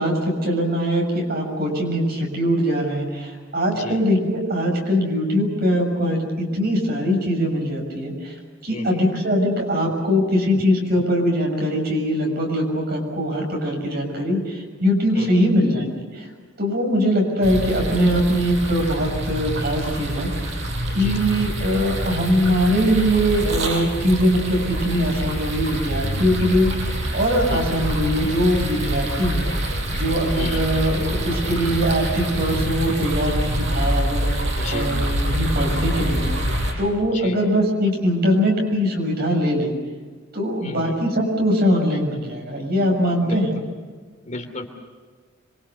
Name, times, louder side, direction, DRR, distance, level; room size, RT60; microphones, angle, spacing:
voice 1, 0.0-16.3 16.6-20.3 20.9-29.5 29.9-36.3 36.8-39.7 40.3-43.5, equal, 55° right, 1 dB, 6.7 m, -22 dB
voice 2, 8.7-9.1 15.1-15.4 20.9-21.2 27.5-27.6 30.3-30.7 34.6-34.9 37.1-37.4 40.6-41.0 43.2-43.4 44.3-44.6, left 2 dB, 40° left, 4 dB, 2.9 m, -33 dB
sound 1, 17.4-36.7, right 1 dB, 70° right, 5.7 m, -26 dB
27.0 x 23.5 x 6.9 m, 1.5 s
head